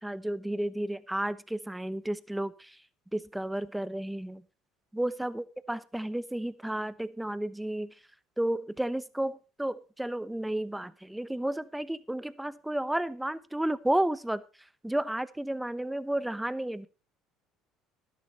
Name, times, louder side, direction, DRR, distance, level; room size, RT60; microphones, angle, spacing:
voice 1, 0.0-2.8 3.1-4.4 4.9-7.9 8.4-14.4 14.8-16.9, right 1 dB, 5° right, 0.9 m, -32 dB
12.5 x 11.0 x 4.1 m
supercardioid pair, 75°, 0 cm